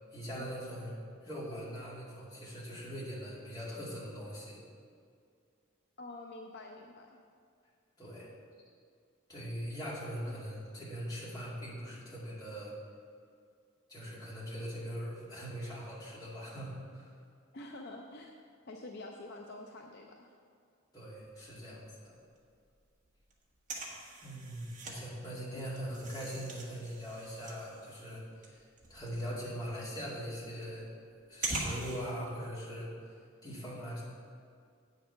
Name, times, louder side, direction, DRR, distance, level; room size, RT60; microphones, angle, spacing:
voice 1, 0.1-0.9 1.2-4.6 8.0-8.3 9.3-12.7 13.9-17.1 20.9-22.1 24.2-30.9 31.3-32.9 33.4-34.0, equal, 20° left, -7 dB, 2.3 m, -41 dB
voice 2, 6.0-7.2 10.3-10.4 17.5-18.3 18.7-20.3 25.5-25.6, left 2 dB, 50° left, 1 dB, 0.5 m, -47 dB
sound 1, 21.2-22.1 22.4-22.5 22.7-25.0 25.3-32.0, right 2 dB, 40° right, 1.3 m, -42 dB
8.6 x 6.6 x 5.7 m, 2.3 s
head